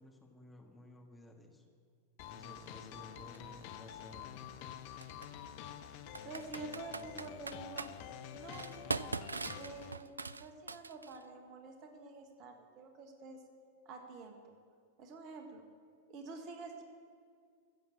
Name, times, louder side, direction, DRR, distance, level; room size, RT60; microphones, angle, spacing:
voice 1, 0.0-1.7 2.3-4.5, left 1 dB, 10° left, 2 dB, 1.7 m, -56 dB
sound 1, 2.2-9.9, left 9 dB, 45° left, 0.7 m, -48 dB
Computer keyboard, 3.3-3.4 5.0-5.3 6.1-7.9 8.5-11.2, right 3 dB, 80° right, 0.3 m, -41 dB
voice 2, 6.1-7.9 8.3-9.1 9.6-13.4 13.8-14.6 15.0-15.6 16.1-16.8, right 3 dB, 40° right, 4 dB, 1.5 m, -48 dB
14.5 x 7.2 x 7.4 m, 2.1 s
figure-of-eight pair, 90°, 0 cm